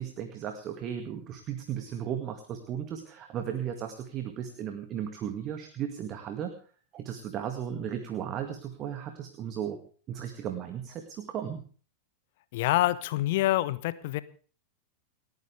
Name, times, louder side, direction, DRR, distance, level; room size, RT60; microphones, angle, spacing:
voice 1, 0.0-6.5 6.9-9.8 10.1-11.6, right 9 dB, 35° right, 7 dB, 2.1 m, -35 dB
voice 2, 12.5-14.2, left 15 dB, 50° left, 16 dB, 1.1 m, -26 dB
29.0 x 9.8 x 3.5 m, 0.42 s
figure-of-eight pair, 90°, 0 cm